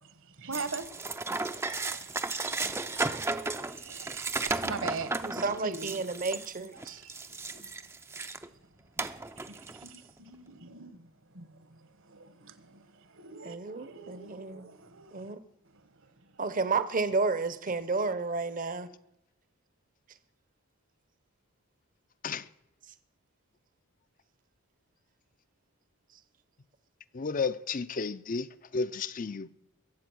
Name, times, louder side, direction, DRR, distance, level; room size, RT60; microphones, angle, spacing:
voice 1, 0.0-0.9 1.4-3.0 3.6-6.0 6.7-15.3 15.6-16.4, right 4 dB, 60° right, 1.3 m, -44 dB
sound 1, 0.5-8.5 9.0-10.0, right 3 dB, 10° right, 0.5 m, -34 dB
voice 2, 5.2-7.0 13.4-14.7 15.1-15.4 16.4-18.9, right 4 dB, 40° right, 0.8 m, -31 dB
voice 3, 27.1-29.5, left 4 dB, 40° left, 0.5 m, -33 dB
22.0 x 7.8 x 6.2 m
head